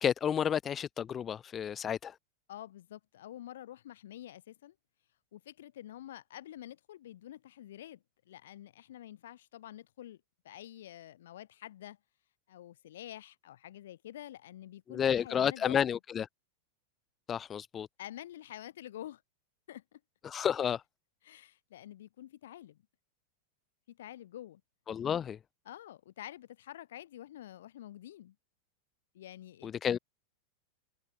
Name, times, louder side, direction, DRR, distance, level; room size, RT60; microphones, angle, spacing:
voice 1, 0.0-2.2 14.9-16.3 17.3-17.9 20.2-20.8 24.9-25.4 29.6-30.0, left 8 dB, 25° left, 0.4 m, -31 dB
voice 2, 2.5-4.8 5.3-10.2 10.4-12.0 12.5-15.9 18.0-19.2 19.7-20.0 21.2-22.8 23.9-24.6 25.7-28.4 29.1-29.7, left 12 dB, 60° left, 5.4 m, -48 dB
figure-of-eight pair, 90°, 0 cm